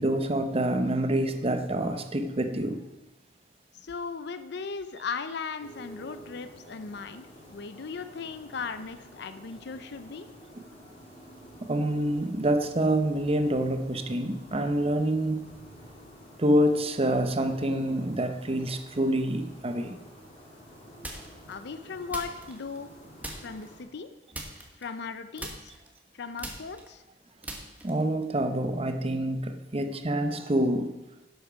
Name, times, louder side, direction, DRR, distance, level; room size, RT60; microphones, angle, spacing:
voice 1, 0.0-2.8 10.5-10.6 11.6-15.5 16.4-19.9 27.8-30.9, right 1 dB, 35° right, 8 dB, 0.9 m, -27 dB
voice 2, 3.8-10.3 21.5-22.9 23.4-24.1 24.8-25.7 26.1-27.0, left 5 dB, 65° left, 10 dB, 0.6 m, -37 dB
sound 1, 5.6-23.8, equal, 35° left, 3.1 m, -50 dB
sound 2, 21.0-21.5 22.1-22.9 23.2-23.7 24.3-25.1 25.4-28.2, right 1 dB, 10° right, 1.4 m, -41 dB
11.0 x 7.9 x 5.2 m, 1.0 s
head